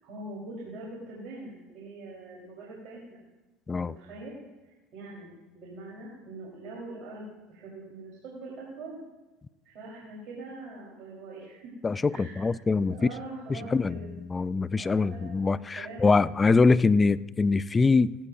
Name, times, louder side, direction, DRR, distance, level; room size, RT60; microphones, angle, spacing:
voice 1, 0.0-3.2 3.8-4.4 4.6-9.0 9.6-11.7 12.1-12.5 12.9-14.1 14.8-16.2, right 2 dB, 60° right, -5 dB, 4.3 m, -43 dB
voice 2, 11.8-13.0 13.5-14.0 14.3-18.2, left 4 dB, 20° left, 18 dB, 0.4 m, -23 dB
17.0 x 14.5 x 2.7 m, 1.1 s
hypercardioid pair, 85°, 0 cm